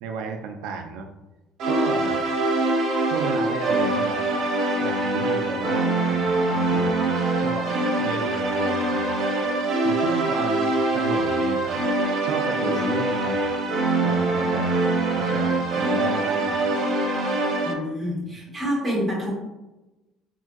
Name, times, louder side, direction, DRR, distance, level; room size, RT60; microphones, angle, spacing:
voice 1, 0.0-1.1 1.7-2.2 3.1-4.2 4.8-7.7 8.0-9.5 9.8-11.9 12.2-13.6 14.0-16.8, right 4 dB, 80° right, 4 dB, 0.3 m, -33 dB
sound 1, 1.6-17.7, right 2 dB, 50° right, 0.7 m, -23 dB
voice 2, 17.6-19.3, equal, 5° right, -7 dB, 1.2 m, -27 dB
3.6 x 2.5 x 2.3 m, 1.0 s
cardioid pair, 180°, 0 cm